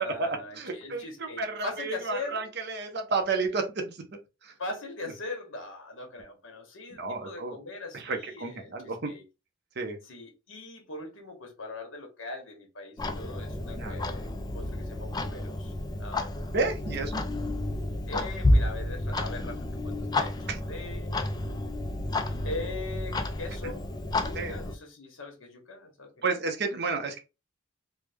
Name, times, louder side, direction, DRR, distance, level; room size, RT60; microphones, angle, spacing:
voice 1, 0.0-2.5 4.6-9.2 10.1-15.7 16.0-16.5 18.1-21.3 22.4-23.9 24.1-26.1, left 2 dB, 90° left, 1.1 m, -41 dB
voice 2, 0.5-4.0 4.4-4.5 5.0-5.1 6.9-7.6 7.9-9.1 9.8-10.0 13.8-14.0 16.5-17.2 20.5-20.6 23.6-23.7 24.3-24.6 26.2-27.2, right 4 dB, 55° right, 0.7 m, -31 dB
Clock, 13.0-24.7, left 1 dB, 20° left, 0.3 m, -30 dB
3.2 x 2.1 x 3.4 m
head